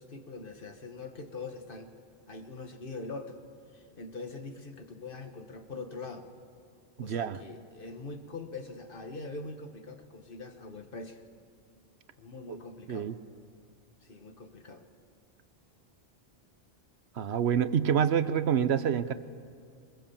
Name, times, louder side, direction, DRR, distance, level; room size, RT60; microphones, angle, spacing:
voice 1, 0.0-1.9 2.3-3.4 3.7-6.3 7.0-11.2 12.2-13.1 14.0-14.9, left 3 dB, 55° left, 6 dB, 1.7 m, -43 dB
voice 2, 7.0-7.4 12.5-12.6 12.9-13.2 17.2-19.1, right 8 dB, 80° right, 13 dB, 1.1 m, -27 dB
22.5 x 21.5 x 7.2 m, 2.3 s
omnidirectional pair, 1.1 m